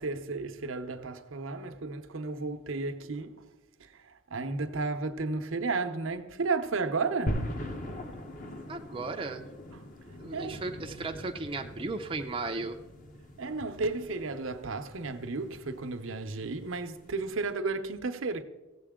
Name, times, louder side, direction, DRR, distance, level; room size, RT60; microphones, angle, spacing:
voice 1, 0.0-3.3 4.3-7.4 10.3-10.6 13.4-18.4, right 3 dB, 75° right, 0.8 m, -33 dB
sound 1, 7.3-17.5, left 1 dB, 40° left, 0.9 m, -41 dB
voice 2, 8.7-9.4 10.2-12.8, right 3 dB, 25° right, 0.5 m, -35 dB
16.0 x 7.7 x 3.7 m
head